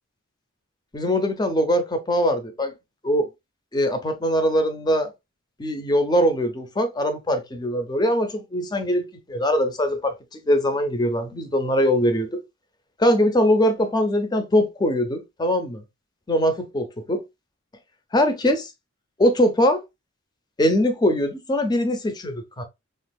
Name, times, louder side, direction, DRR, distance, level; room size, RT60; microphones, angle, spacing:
voice 1, 0.9-2.7 3.0-3.3 3.7-5.1 5.6-12.4 13.0-15.8 16.3-17.2 18.1-18.7 19.2-19.8 20.6-22.6, equal, 20° left, 0.5 m, -22 dB
3.4 x 2.4 x 2.2 m
head